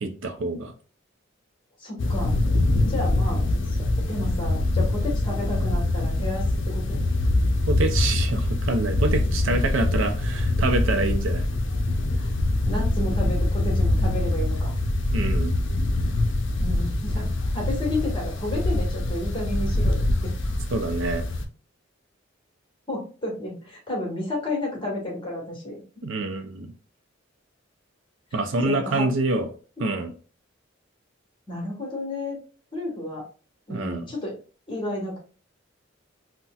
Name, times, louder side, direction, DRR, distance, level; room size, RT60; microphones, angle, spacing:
voice 1, 0.0-0.7 7.7-11.5 15.1-15.5 20.7-21.2 26.0-26.7 28.3-29.5 29.8-30.1 33.7-34.0, right 2 dB, 85° right, 8 dB, 0.5 m, -26 dB
voice 2, 1.8-2.4 2.9-3.5 3.8-7.0 9.7-9.8 12.2-12.3 12.6-14.7 16.6-17.3 17.5-20.3 22.9-25.8 28.6-29.1 31.5-32.4 32.7-33.2 33.7-34.3 34.7-35.2, left 1 dB, 25° left, -1 dB, 1.2 m, -31 dB
sound 1, 2.0-21.4, left 1 dB, 70° left, 0.5 m, -24 dB
4.0 x 2.1 x 2.3 m, 0.38 s
head